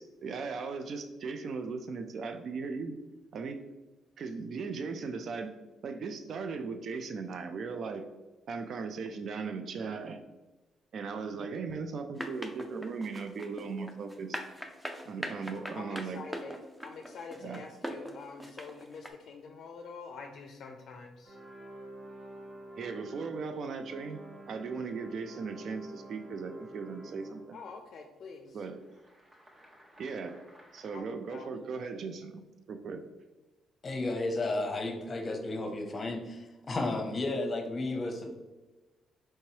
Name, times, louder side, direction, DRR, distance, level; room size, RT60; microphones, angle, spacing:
voice 1, 0.0-3.0 3.3-3.6 4.2-5.5 5.8-8.0 8.5-10.3 10.9-14.4 15.0-16.2 17.4-17.6 22.8-24.2 24.5-27.6 28.5-28.8 30.0-30.4 30.7-33.0, right 4 dB, 60° right, 7 dB, 0.4 m, -38 dB
sound 1, 12.2-19.1, equal, 5° right, 0.6 m, -40 dB
voice 2, 15.6-16.5 16.8-21.4 24.3-24.4 27.5-28.6 30.9-31.5, left 4 dB, 65° left, 3 dB, 0.4 m, -46 dB
sound 2, 21.2-27.7 28.5-31.0, right 1 dB, 35° right, 1.1 m, -49 dB
voice 3, 33.8-38.3, left 2 dB, 35° left, 4 dB, 0.8 m, -33 dB
4.5 x 3.0 x 2.8 m, 1.1 s
cardioid pair, 90°, 0 cm